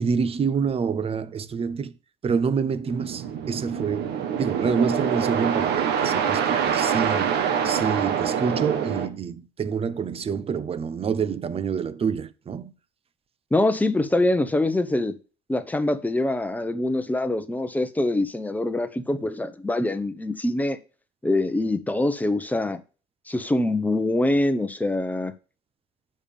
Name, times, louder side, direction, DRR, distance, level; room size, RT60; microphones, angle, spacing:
voice 1, 0.0-1.9 2.2-12.7, right 6 dB, 35° right, 0.8 m, -27 dB
sound 1, 2.9-9.1, right 8 dB, 80° right, 1.6 m, -25 dB
voice 2, 13.5-15.2 15.5-20.8 21.2-22.8 23.3-25.3, left 2 dB, 10° left, 1.0 m, -24 dB
7.0 x 5.5 x 7.0 m
cardioid pair, 110°, 17 cm